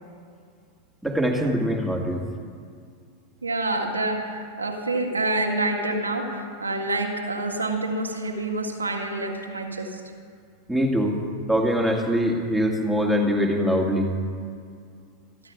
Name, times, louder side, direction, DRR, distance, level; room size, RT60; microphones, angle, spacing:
voice 1, 1.0-2.3 10.7-11.2 11.5-14.1, equal, ahead, 0 dB, 2.3 m, -23 dB
voice 2, 3.4-10.0, right 2 dB, 80° right, 0 dB, 1.9 m, -27 dB
28.0 x 11.0 x 3.7 m, 2.2 s
figure-of-eight pair, 90°, 0 cm